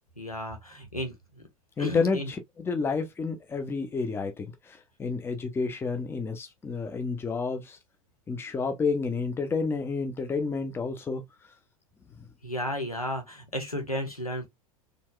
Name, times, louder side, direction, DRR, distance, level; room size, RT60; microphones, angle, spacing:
voice 1, 0.2-1.4 1.8-2.3 12.4-14.5, left 1 dB, 90° left, 1.5 m, -33 dB
voice 2, 1.8-7.8 8.3-11.2 12.2-12.3, left 4 dB, 15° left, 0.8 m, -30 dB
4.4 x 3.4 x 2.2 m
figure-of-eight pair, 90°, 18 cm